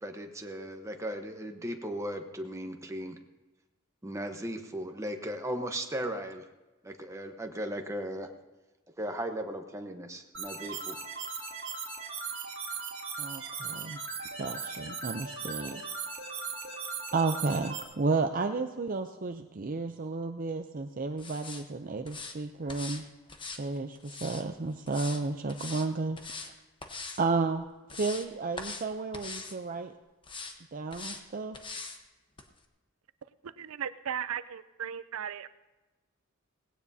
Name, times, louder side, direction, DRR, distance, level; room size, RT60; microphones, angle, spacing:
voice 1, 0.0-3.2 4.0-6.4 6.8-8.3 9.0-11.0, equal, 15° right, 4 dB, 1.0 m, -37 dB
sound 1, 10.3-17.8, right 5 dB, 65° right, 2.2 m, -38 dB
voice 2, 13.2-14.0 14.4-15.8 17.1-23.0 23.6-26.2 27.2-27.6 28.0-29.9 30.7-31.6, right 3 dB, 40° right, 7 dB, 0.5 m, -32 dB
sound 2, 21.2-21.6 22.1-22.4 22.7-23.0 23.3-24.4 24.9-25.2 25.5-25.9 26.2-26.5 26.8-27.2 27.6-28.3 28.6-28.9 29.1-29.6 30.2-30.5 30.9-31.2 31.5-32.0 32.4-32.5, left 4 dB, 25° left, 1.1 m, -41 dB
voice 3, 33.4-35.5, right 8 dB, 90° right, 14 dB, 0.5 m, -36 dB
18.0 x 16.5 x 2.8 m, 1.1 s
head